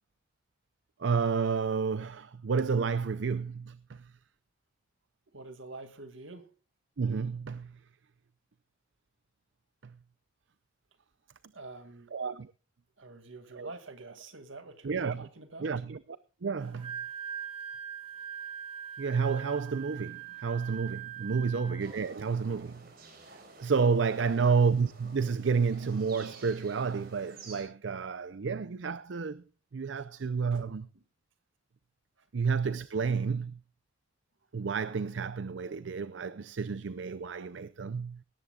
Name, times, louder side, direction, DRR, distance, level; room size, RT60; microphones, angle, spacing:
voice 1, 1.0-4.1 7.0-7.8 9.8-9.9 12.1-12.5 13.6-13.7 14.8-15.3 15.6-16.0 16.4-17.0 19.0-22.9 23.3-29.4 29.7-30.8 32.3-33.6 34.5-38.2, right 5 dB, 70° right, 0.5 m, -30 dB
voice 2, 5.3-6.5 11.5-12.1 13.0-15.7 21.4-21.7 24.2-24.5 29.9-30.1 30.5-30.7 30.9-31.0 32.2-32.3, right 2 dB, 85° right, 2.3 m, -47 dB
Wind instrument woodwind instrument, 16.6-21.9, right 8 dB, 30° right, 2.6 m, -42 dB
sound 1, 21.8-27.6, right 3 dB, 50° right, 4.2 m, -52 dB
18.0 x 14.5 x 2.4 m
head